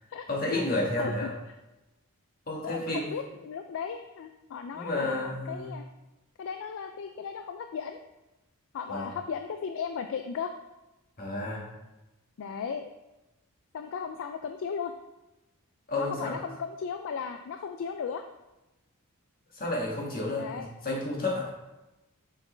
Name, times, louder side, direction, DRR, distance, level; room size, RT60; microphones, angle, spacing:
voice 1, 0.3-1.3 2.5-3.1 4.7-5.7 8.9-9.1 11.2-11.7 15.9-16.4 19.5-21.5, left 2 dB, 40° left, -3 dB, 1.8 m, -31 dB
voice 2, 1.0-1.3 2.6-5.8 6.4-8.0 8.7-10.5 12.4-12.9 13.7-14.9 16.0-18.2 20.4-20.7, left 6 dB, 60° left, 7 dB, 0.4 m, -36 dB
6.3 x 6.2 x 3.3 m, 1.0 s
head